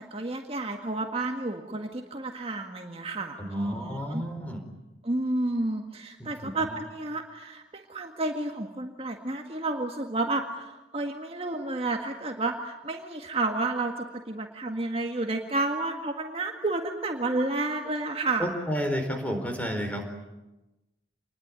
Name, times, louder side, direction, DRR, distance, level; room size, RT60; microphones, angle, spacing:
voice 1, 0.0-4.2 5.0-18.5, right 2 dB, 30° right, 3 dB, 1.8 m, -31 dB
voice 2, 3.4-4.6 6.2-6.5 18.4-20.0, equal, 10° left, 5 dB, 4.3 m, -31 dB
28.0 x 21.0 x 9.8 m, 1.0 s
head